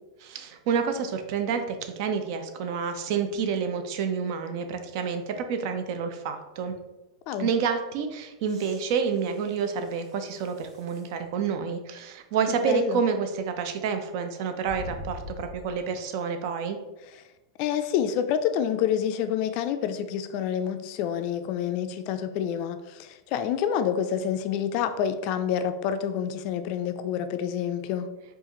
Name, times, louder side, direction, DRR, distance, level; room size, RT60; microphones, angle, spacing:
voice 1, 0.2-6.7 7.4-16.8, right 6 dB, 50° right, 7 dB, 0.5 m, -29 dB
sound 1, 8.4-11.2 11.8-11.9 14.6-15.9 17.7-17.8, left 3 dB, 85° right, 1.3 m, -44 dB
voice 2, 12.7-13.0 17.6-28.1, left 9 dB, 45° left, 9 dB, 0.4 m, -28 dB
4.8 x 2.5 x 2.9 m, 1.0 s
supercardioid pair, 135°, 3 cm